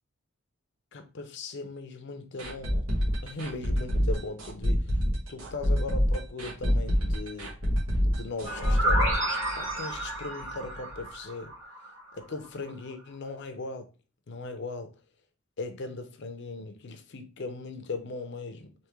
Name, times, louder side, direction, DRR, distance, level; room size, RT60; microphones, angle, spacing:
voice 1, 0.9-2.9 3.2-4.9 5.3-7.6 8.1-11.5 12.1-13.9 14.3-14.9 15.6-18.7, left 3 dB, 55° left, 0.5 m, -38 dB
sound 1, 2.4-10.1 10.4-10.5 10.9-11.0, equal, 90° right, 1.1 m, -26 dB
sound 2, 8.4-12.2, right 1 dB, 65° right, 1.9 m, -31 dB
3.5 x 2.7 x 3.0 m
head